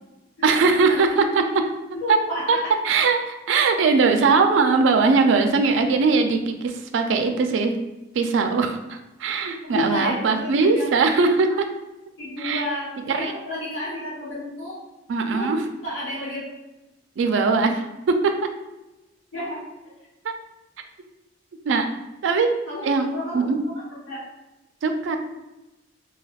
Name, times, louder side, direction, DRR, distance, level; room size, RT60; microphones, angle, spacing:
voice 1, 0.4-1.7 2.1-2.2 2.5-2.6 2.8-7.8 8.1-11.7 12.4-12.6 13.1-13.3 15.1-15.6 17.2-18.3 20.2-20.3 21.7-21.9 22.2-22.5 22.8-23.1 23.3-23.6 24.8-25.2, right 4 dB, 80° right, 6 dB, 0.3 m, -20 dB
voice 2, 2.0-2.8 9.6-10.9 12.2-14.8 15.3-15.5 15.8-16.4 19.3-19.6 22.7-23.7 24.1-24.2, left 1 dB, 85° left, -10 dB, 1.1 m, -31 dB
3.3 x 2.7 x 2.3 m, 1.0 s
head